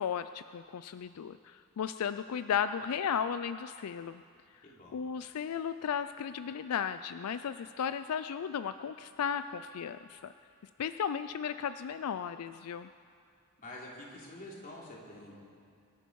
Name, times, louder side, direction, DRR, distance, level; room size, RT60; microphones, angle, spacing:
voice 1, 0.0-4.2 4.9-10.3 10.8-12.9, left 7 dB, 85° left, 12 dB, 0.4 m, -35 dB
voice 2, 4.6-5.0 13.6-15.3, left 1 dB, 40° left, -3 dB, 3.1 m, -47 dB
25.5 x 11.0 x 4.7 m, 2.3 s
head